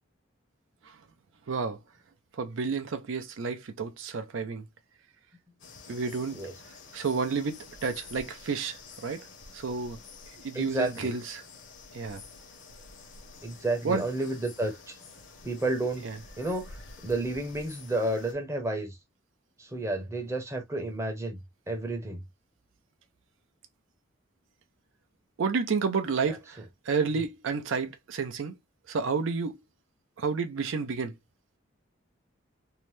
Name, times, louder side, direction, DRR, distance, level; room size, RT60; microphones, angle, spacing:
voice 1, 1.5-1.8 2.4-4.6 5.9-6.4 6.9-9.2 9.5-10.0 10.4-11.4 11.9-12.2 13.8-14.0 16.0-16.1 25.4-28.6 28.9-29.6 30.2-31.1, right 5 dB, 70° right, 0.4 m, -30 dB
sound 1, 5.6-18.3, left 4 dB, 60° left, 0.8 m, -49 dB
voice 2, 10.5-11.2 13.4-15.0 15.4-16.0 16.4-16.8 17.0-19.0 19.6-21.4 21.7-22.2 26.3-26.4, right 2 dB, 15° right, 0.7 m, -31 dB
2.7 x 2.1 x 3.1 m
head